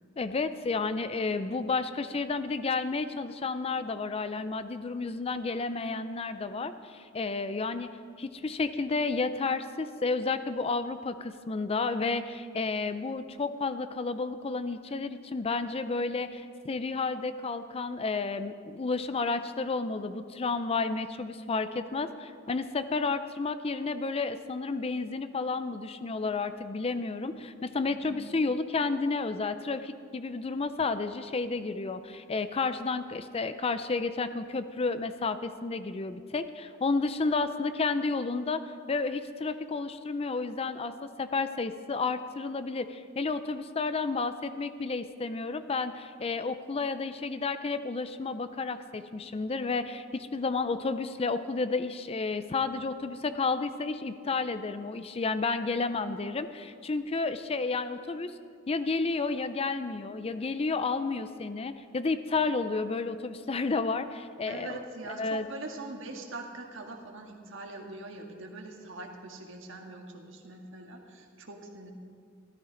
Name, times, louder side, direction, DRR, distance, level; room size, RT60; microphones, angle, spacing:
voice 1, 0.2-58.3 58.7-64.8 65.2-65.4, left 4 dB, 30° left, 11 dB, 0.5 m, -31 dB
voice 2, 27.8-28.2 64.5-71.9, right 2 dB, 70° right, 2 dB, 1.7 m, -43 dB
13.5 x 13.0 x 5.1 m, 2.2 s
head